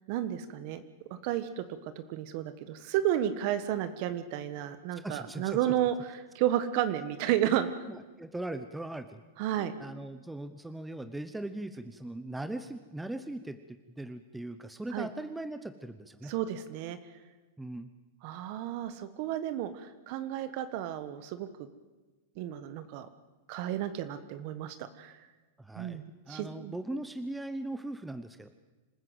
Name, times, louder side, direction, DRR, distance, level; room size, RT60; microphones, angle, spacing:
voice 1, 0.1-0.8 1.1-7.7 9.4-9.7 14.9-15.1 16.2-17.0 18.2-21.5 22.4-23.1 23.5-25.2 25.8-26.7, right 11 dB, 50° right, 11 dB, 1.3 m, -32 dB
voice 2, 4.9-5.6 7.9-9.2 9.6-16.3 17.6-17.9 25.6-28.5, right 1 dB, 5° right, 10 dB, 0.9 m, -39 dB
26.0 x 14.5 x 8.0 m, 1.2 s
supercardioid pair, 135°, 0 cm